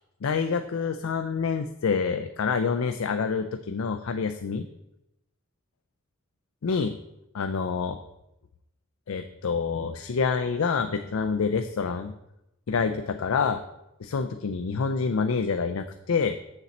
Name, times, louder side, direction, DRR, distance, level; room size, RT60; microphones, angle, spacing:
voice 1, 0.2-4.6 6.6-7.0 7.3-8.0 9.1-12.1 12.7-13.6 14.0-16.4, left 5 dB, 90° left, 7 dB, 0.5 m, -27 dB
7.1 x 6.7 x 4.2 m, 0.88 s
head